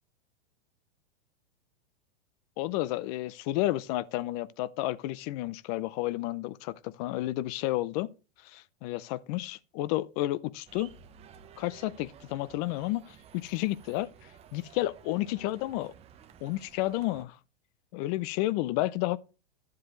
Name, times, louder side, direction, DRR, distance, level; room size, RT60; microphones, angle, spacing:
voice 1, 2.6-8.1 8.4-10.9 11.6-14.1 14.5-15.9 16.4-17.4 17.9-19.2, left 16 dB, 35° left, 0.6 m, -31 dB
sound 1, 10.6-17.2, right 8 dB, 20° right, 0.8 m, -54 dB
11.5 x 7.6 x 3.1 m
hypercardioid pair, 140°, 33 cm